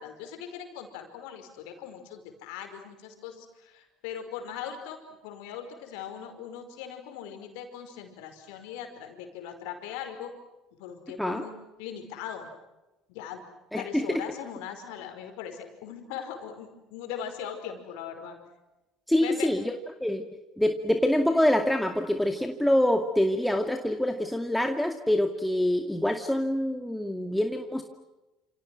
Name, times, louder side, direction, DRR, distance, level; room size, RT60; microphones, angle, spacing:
voice 1, 0.0-10.3 10.8-11.5 11.8-12.5 13.1-13.4 13.8-18.4 19.2-19.5, left 8 dB, 65° left, 6 dB, 5.2 m, -40 dB
voice 2, 13.7-14.2 19.1-19.7 20.0-20.2 20.6-27.8, left 1 dB, 5° left, 4 dB, 2.3 m, -25 dB
29.5 x 28.5 x 6.4 m, 1.0 s
figure-of-eight pair, 60°, 0 cm